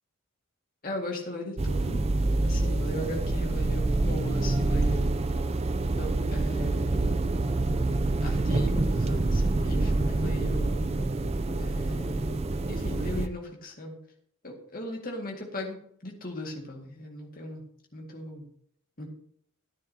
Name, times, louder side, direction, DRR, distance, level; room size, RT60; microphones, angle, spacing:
voice 1, 0.8-2.0 2.4-5.2 5.9-7.3 8.2-10.8 11.6-14.0 14.4-15.8 16.0-17.7 17.9-18.5 19.0-19.1, left 1 dB, 40° left, 0 dB, 2.0 m, -37 dB
sound 1, 1.6-13.3, right 2 dB, 30° right, 0.4 m, -26 dB
14.0 x 9.5 x 2.9 m, 0.66 s
head